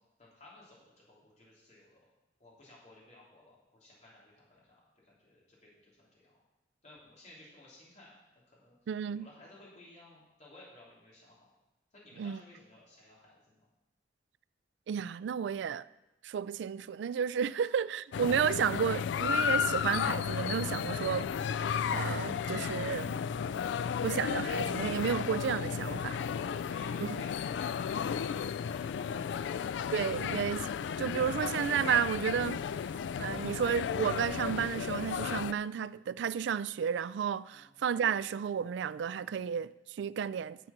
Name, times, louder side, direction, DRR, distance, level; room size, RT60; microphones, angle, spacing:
voice 1, 0.2-2.0 2.4-6.4 6.8-8.2 8.5-8.7 9.1-11.5 11.9-13.7 17.5-17.8 26.2-29.5 37.5-37.8, left 1 dB, 40° left, 3.3 m, -57 dB
voice 2, 8.9-9.3 12.2-12.4 14.9-15.9 16.2-21.3 21.9-23.2 24.0-26.2 27.0-27.2 29.9-30.7 31.0-32.6 33.2-40.6, right 7 dB, 75° right, 0.3 m, -32 dB
sound 1, 18.1-35.5, left 7 dB, 75° left, 0.3 m, -33 dB
10.5 x 7.2 x 6.0 m
head